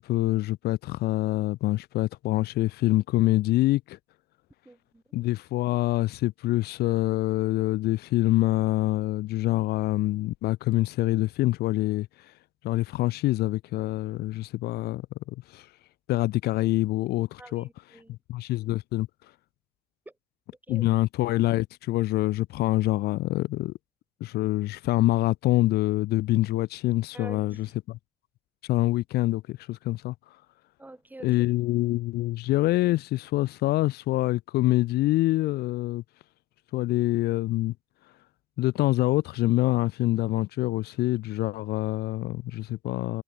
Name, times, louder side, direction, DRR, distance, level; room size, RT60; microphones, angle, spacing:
voice 1, 0.0-4.0 5.1-12.3 12.6-15.1 15.5-15.7 16.1-17.7 18.1-19.1 20.7-23.7 24.2-28.0 28.6-30.1 31.2-36.0 36.7-37.7 38.6-43.2, left 17 dB, 70° left, 0.5 m, -25 dB
voice 2, 4.7-5.0 17.4-18.2 20.1-20.2 20.7-20.9 27.1-27.7 30.8-31.3, right 2 dB, 10° right, 5.3 m, -46 dB
cardioid pair, 110°, 17 cm